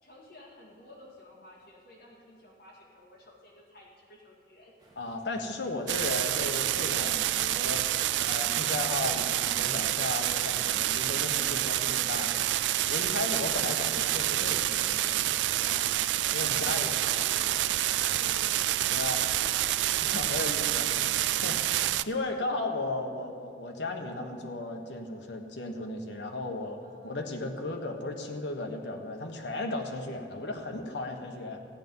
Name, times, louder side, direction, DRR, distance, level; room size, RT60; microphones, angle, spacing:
voice 1, 0.0-4.7 15.5-16.0 16.4-19.8 26.8-27.2, left 1 dB, 55° left, -5 dB, 2.1 m, -52 dB
sound 1, 4.8-11.4, right 1 dB, 25° right, 1.7 m, -53 dB
voice 2, 5.0-7.9 8.2-12.5 12.9-15.2 16.3-16.9 18.0-18.1 18.9-19.2 20.0-31.6, left 2 dB, 80° left, 3 dB, 1.2 m, -35 dB
sound 2, 5.9-22.0, right 14 dB, 80° right, 0.3 m, -28 dB
14.0 x 9.2 x 5.4 m, 2.3 s
head